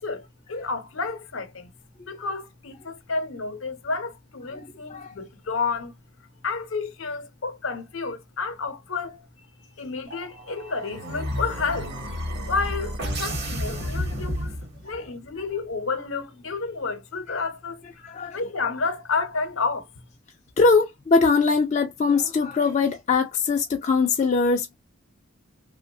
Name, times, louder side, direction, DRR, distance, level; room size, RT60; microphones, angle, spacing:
voice 1, 0.0-1.7 2.1-5.9 6.4-9.3 9.8-11.9 12.5-14.5 14.8-17.8 18.3-19.9, left 4 dB, 70° left, 0.7 m, -30 dB
sound 1, 10.1-15.1, equal, 50° right, 0.8 m, -31 dB
voice 2, 18.0-18.4 20.6-24.8, left 4 dB, 35° left, 0.3 m, -21 dB
2.9 x 2.1 x 2.6 m
head